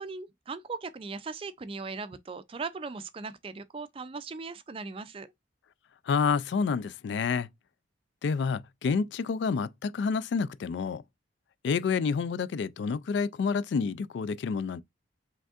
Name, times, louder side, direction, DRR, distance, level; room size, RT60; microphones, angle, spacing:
voice 1, 0.0-5.3, right 4 dB, 30° right, 0.4 m, -39 dB
voice 2, 6.1-7.5 8.2-11.0 11.6-14.8, left 5 dB, 65° left, 0.3 m, -28 dB
5.1 x 3.4 x 2.4 m
head